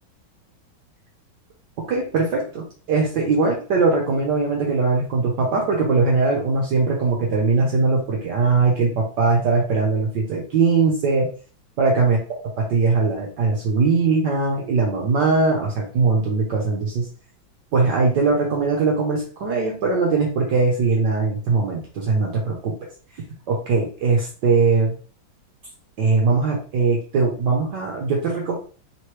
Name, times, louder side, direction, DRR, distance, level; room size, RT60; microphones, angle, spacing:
voice 1, 1.9-11.3 11.8-12.2 12.6-17.1 17.7-22.7 23.5-25.0 26.0-28.6, right 4 dB, 70° right, -1 dB, 1.3 m, -20 dB
3.9 x 3.1 x 2.9 m, 0.39 s
omnidirectional pair, 2.2 m